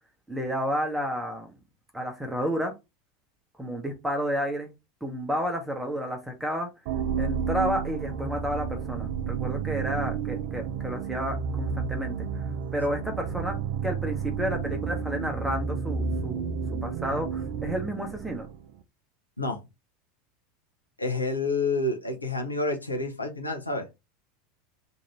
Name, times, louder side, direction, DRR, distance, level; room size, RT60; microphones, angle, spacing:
voice 1, 0.3-1.5 1.9-2.7 3.6-4.7 5.0-6.7 7.2-12.2 12.7-13.6 13.8-16.4 16.8-18.5, equal, 5° right, 3 dB, 0.8 m, -31 dB
sound 1, 6.8-18.7, right 6 dB, 55° right, 0.3 m, -31 dB
voice 2, 21.0-23.9, left 2 dB, 90° left, 3 dB, 0.7 m, -29 dB
2.8 x 2.6 x 3.2 m, 0.24 s
figure-of-eight pair, 80°, 0 cm